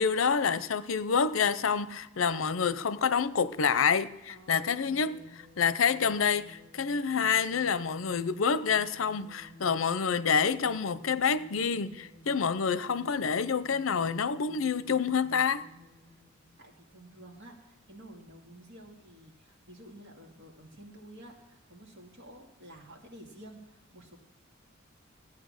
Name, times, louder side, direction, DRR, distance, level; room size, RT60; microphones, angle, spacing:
voice 1, 0.0-5.2 5.6-15.6, left 6 dB, 85° left, 0.6 m, -27 dB
voice 2, 4.3-5.3 16.6-24.2, right 1 dB, 60° right, 2.2 m, -51 dB
sound 1, 4.5-17.4, left 1 dB, 45° right, 1.7 m, -54 dB
15.0 x 8.6 x 6.4 m
head